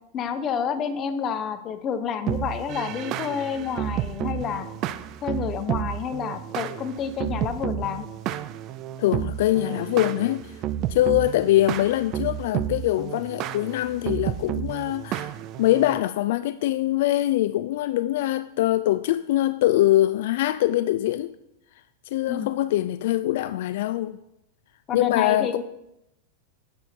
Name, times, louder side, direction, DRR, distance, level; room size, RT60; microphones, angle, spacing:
voice 1, 0.1-4.7 5.2-8.0 22.3-22.5 24.9-25.6, left 7 dB, 25° left, 0.8 m, -29 dB
sound 1, 2.3-16.0, right 11 dB, 35° right, 0.4 m, -31 dB
voice 2, 9.0-10.5 10.9-15.3 15.6-21.3 22.1-24.2 24.9-25.5, left 14 dB, 65° left, 0.3 m, -23 dB
9.9 x 7.1 x 4.4 m
supercardioid pair, 150°, 0 cm